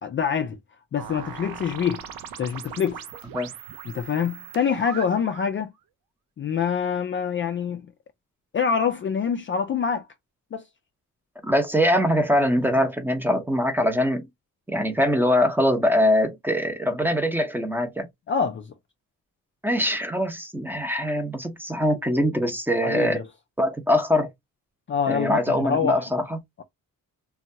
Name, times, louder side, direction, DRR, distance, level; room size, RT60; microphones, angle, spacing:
voice 1, 0.0-0.6 0.9-2.0 2.4-3.0 3.9-5.7 6.4-7.9 8.5-10.1 10.5-10.6 18.3-18.7 22.8-23.2 24.9-26.0, left 7 dB, 35° left, 0.4 m, -25 dB
sound 1, 1.0-5.6, right 8 dB, 90° right, 0.6 m, -39 dB
voice 2, 11.4-14.3 14.7-18.1 19.6-23.2 23.6-24.3 25.1-26.4, equal, 5° right, 0.8 m, -23 dB
2.8 x 2.2 x 2.7 m
cardioid pair, 100°, 34 cm